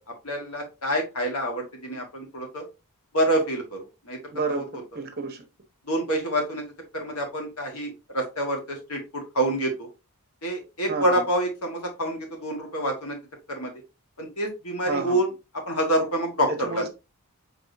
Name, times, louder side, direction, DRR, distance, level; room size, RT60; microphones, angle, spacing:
voice 1, 0.2-2.6 3.1-3.8 4.0-4.2 4.5-4.6 5.9-6.6 6.9-9.9 10.4-13.2 13.5-13.7 14.2-15.3 15.6-16.8, right 1 dB, 75° left, 1.6 m, -27 dB
voice 2, 4.3-5.4 10.9-11.2 14.9-15.2 16.5-16.9, right 4 dB, 45° right, 0.9 m, -30 dB
5.0 x 3.7 x 2.6 m
head